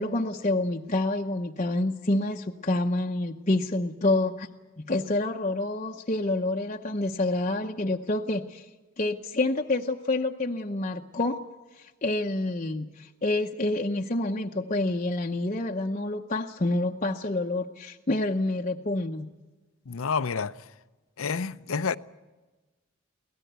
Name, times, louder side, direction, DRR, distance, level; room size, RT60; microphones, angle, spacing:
voice 1, 0.0-4.5 4.8-8.6 9.0-11.4 11.8-19.3, left 2 dB, 35° left, 0.8 m, -28 dB
voice 2, 19.9-20.5 21.2-22.0, left 5 dB, 80° left, 0.7 m, -29 dB
24.0 x 17.5 x 8.1 m
head